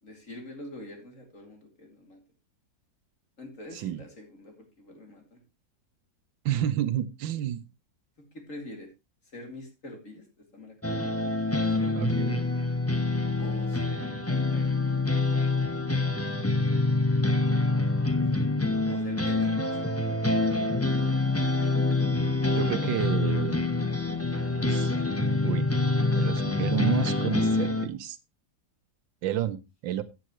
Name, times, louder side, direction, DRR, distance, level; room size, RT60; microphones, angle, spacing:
voice 1, 0.0-2.2 3.4-5.4 8.2-8.9 9.3-10.3 10.5-12.1 13.4-14.2 14.5-15.0 18.9-19.7, left 1 dB, 40° left, 3 dB, 3.1 m, -45 dB
voice 2, 3.7-4.0 6.4-7.6 12.0-12.4 22.5-23.6 24.7-25.0 25.4-25.7 26.1-28.2 29.2-30.0, right 11 dB, 85° right, 13 dB, 1.6 m, -30 dB
sound 1, 10.8-27.9, left 2 dB, 15° left, 0.6 m, -26 dB
14.0 x 9.0 x 3.0 m, 0.24 s
omnidirectional pair, 2.0 m